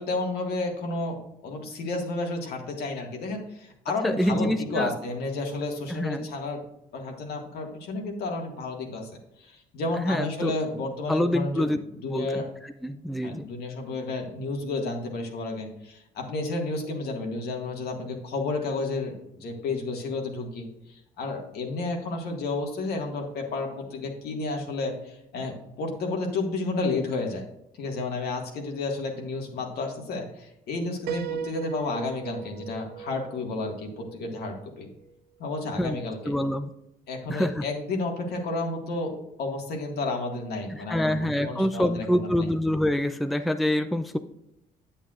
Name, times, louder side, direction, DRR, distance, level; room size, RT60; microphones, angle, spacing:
voice 1, 0.0-6.6 6.9-11.8 12.0-12.5 13.2-27.4 27.8-34.9 35.4-36.2 37.1-42.5, left 3 dB, 70° left, 2 dB, 1.8 m, -31 dB
voice 2, 4.0-4.9 5.9-6.3 10.0-10.6 11.1-11.8 12.1-13.5 35.8-36.7 37.3-37.6 40.7-44.2, left 1 dB, ahead, 9 dB, 0.4 m, -26 dB
Piano, 31.1-34.8, right 8 dB, 75° right, 0.5 m, -37 dB
8.6 x 8.1 x 2.5 m, 0.85 s
cardioid pair, 95°, 17 cm